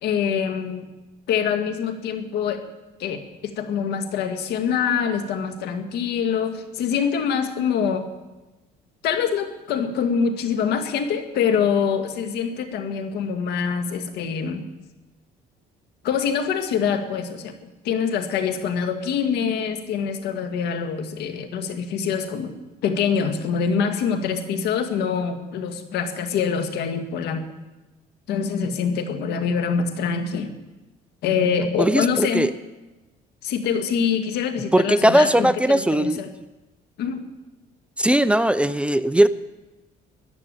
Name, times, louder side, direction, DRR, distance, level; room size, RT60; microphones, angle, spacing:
voice 1, 0.0-0.9 1.3-2.6 3.0-8.0 9.0-14.6 16.0-22.5 22.8-27.5 28.3-30.5 31.2-32.5 33.4-36.3 37.0-37.2, left 6 dB, 80° left, 7 dB, 2.0 m, -25 dB
voice 2, 31.8-32.5 34.7-36.2 38.0-39.3, right 1 dB, 5° right, 13 dB, 0.6 m, -18 dB
14.5 x 11.0 x 9.0 m, 1.1 s
cardioid pair, 110°, 17 cm